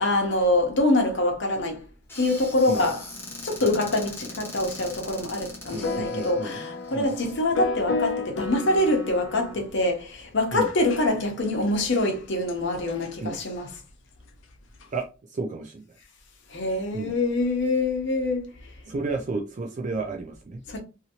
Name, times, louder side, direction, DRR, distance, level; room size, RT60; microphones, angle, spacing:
voice 1, 0.0-1.8 2.2-3.0 3.4-13.7 16.5-18.5 20.7-20.8, left 2 dB, 65° left, 0.8 m, -25 dB
Squeak / Cupboard open or close, 2.1-7.4, left 2 dB, 10° left, 0.9 m, -41 dB
voice 2, 5.7-7.1 10.5-10.7 13.2-13.4 14.9-15.8 16.9-17.1 18.9-20.6, right 3 dB, 40° right, 0.4 m, -32 dB
sound 1, 5.8-9.6 10.7-11.0 11.7-11.8 12.0-12.1 12.5-12.6 12.9-13.1 14.8-14.9, left 4 dB, 80° left, 0.5 m, -31 dB
2.8 x 2.6 x 2.8 m
head